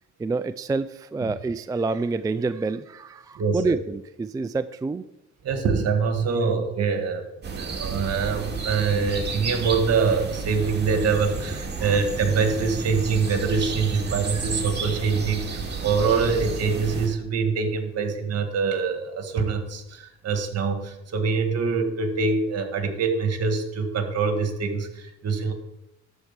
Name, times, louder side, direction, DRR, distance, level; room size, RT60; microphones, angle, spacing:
voice 1, 0.2-5.0 11.7-11.9 14.1-14.5, right 3 dB, 15° right, 12 dB, 0.3 m, -28 dB
voice 2, 3.4-3.7 5.4-7.2 7.5-25.5, right 5 dB, 55° right, 6 dB, 1.9 m, -24 dB
sound 1, 7.4-17.1, right 4 dB, 35° right, 2.3 m, -31 dB
12.5 x 4.6 x 7.3 m, 0.92 s
cardioid pair, 90°, 30 cm